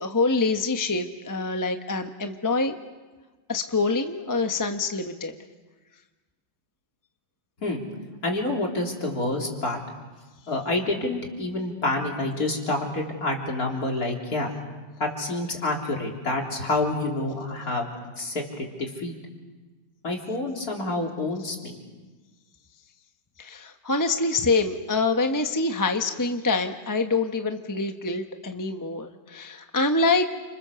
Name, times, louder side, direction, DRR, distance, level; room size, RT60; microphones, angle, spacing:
voice 1, 0.0-2.7 3.5-5.3 23.4-30.3, left 3 dB, 15° left, 5 dB, 1.0 m, -25 dB
voice 2, 8.2-9.8 10.5-14.5 15.0-17.9 18.2-19.1 20.0-21.8, left 2 dB, 55° left, 0 dB, 4.0 m, -28 dB
29.5 x 26.5 x 7.0 m, 1.3 s
omnidirectional pair, 1.9 m